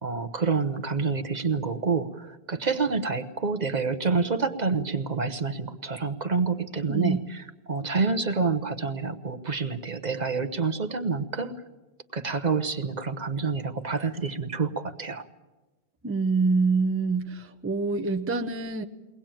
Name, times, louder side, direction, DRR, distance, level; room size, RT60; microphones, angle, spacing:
voice 1, 0.0-11.5 12.1-15.3, right 4 dB, 45° right, 8 dB, 1.0 m, -28 dB
voice 2, 16.0-18.8, right 4 dB, 15° right, 5 dB, 0.7 m, -26 dB
22.5 x 18.5 x 9.0 m, 1.2 s
omnidirectional pair, 1.1 m